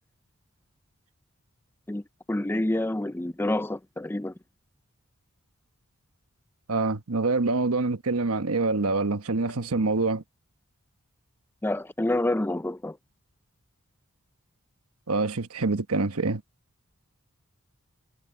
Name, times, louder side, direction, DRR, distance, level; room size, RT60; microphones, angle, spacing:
voice 1, 2.3-4.3 11.6-13.0, left 1 dB, 10° left, 0.4 m, -28 dB
voice 2, 6.7-10.2 15.1-16.4, right 3 dB, 80° right, 1.1 m, -26 dB
head